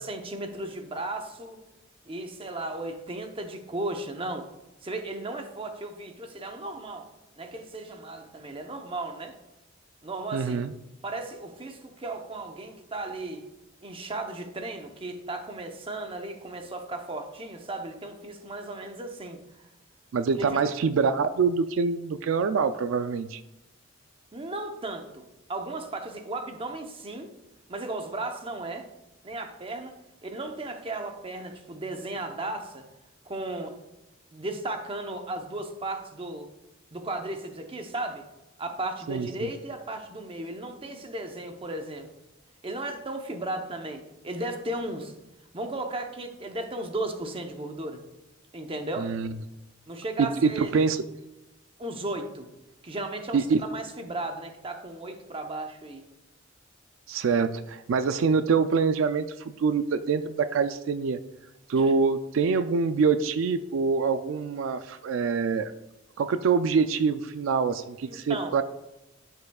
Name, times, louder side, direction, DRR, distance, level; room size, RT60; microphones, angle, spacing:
voice 1, 0.0-1.6 2.1-4.5 4.8-7.1 7.4-9.4 10.0-10.6 11.0-13.4 13.8-19.4 20.4-20.6 24.3-25.2 25.5-27.3 27.7-28.9 29.2-30.0 30.2-32.8 33.3-33.8 34.3-36.5 36.9-38.2 38.6-42.1 42.6-45.1 45.5-48.0 48.5-49.1 49.9-50.7 51.8-52.5 52.8-56.1 61.8-61.9 68.1-68.6, right 2 dB, 25° right, 5 dB, 0.8 m, -35 dB
voice 2, 10.3-10.7 20.1-23.4 39.1-39.3 49.0-49.3 50.2-51.0 53.3-53.6 57.1-61.2 61.7-65.7 66.2-68.6, right 5 dB, 75° right, 11 dB, 0.4 m, -25 dB
11.5 x 5.6 x 2.3 m, 0.95 s
head